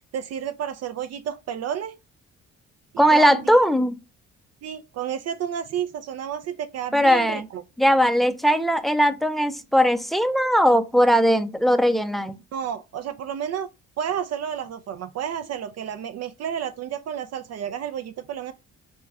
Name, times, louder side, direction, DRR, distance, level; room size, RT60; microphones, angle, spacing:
voice 1, 0.1-1.9 3.1-3.6 4.6-7.6 12.5-13.7 14.0-18.5, right 9 dB, 55° right, 0.4 m, -31 dB
voice 2, 3.0-4.0 6.9-7.4 7.8-12.4, equal, ahead, 0.4 m, -19 dB
5.2 x 2.2 x 3.4 m
cardioid pair, 90°, 30 cm